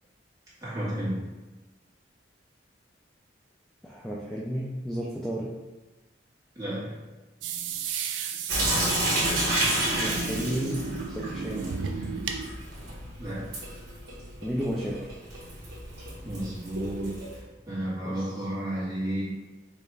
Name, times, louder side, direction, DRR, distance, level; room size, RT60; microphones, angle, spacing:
voice 1, 0.6-1.3 6.5-7.0 13.2-13.5 16.2-17.2 17.7-19.2, right 1 dB, 20° right, -9 dB, 1.5 m, -32 dB
voice 2, 3.8-5.6 10.0-10.8 11.1-11.7 14.4-15.3 18.0-18.2, equal, 5° left, -5 dB, 0.3 m, -33 dB
sound 1, 7.4-12.5, right 5 dB, 80° right, 0.4 m, -34 dB
Sink (filling or washing) / Drip, 8.5-17.4, right 1 dB, 60° right, 1.2 m, -31 dB
5.0 x 2.4 x 3.2 m, 1.2 s
head